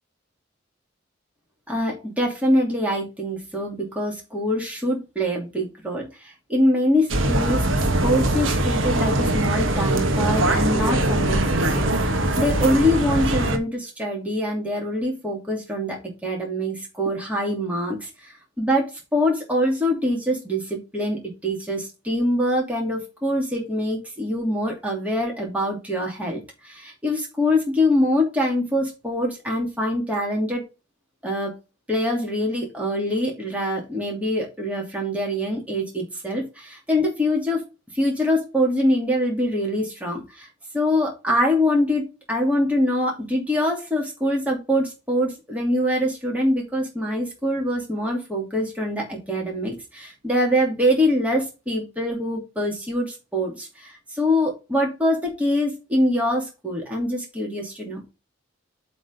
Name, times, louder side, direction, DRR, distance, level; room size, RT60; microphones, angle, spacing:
voice 1, 1.7-7.7 8.0-11.9 12.4-18.3 18.6-30.6 31.2-31.5 31.9-37.6 37.9-40.5 40.7-58.0, left 1 dB, 10° right, -2 dB, 2.7 m, -24 dB
sound 1, 7.1-13.6, right 1 dB, 90° right, 1.3 m, -22 dB
7.7 x 3.8 x 5.2 m, 0.27 s
head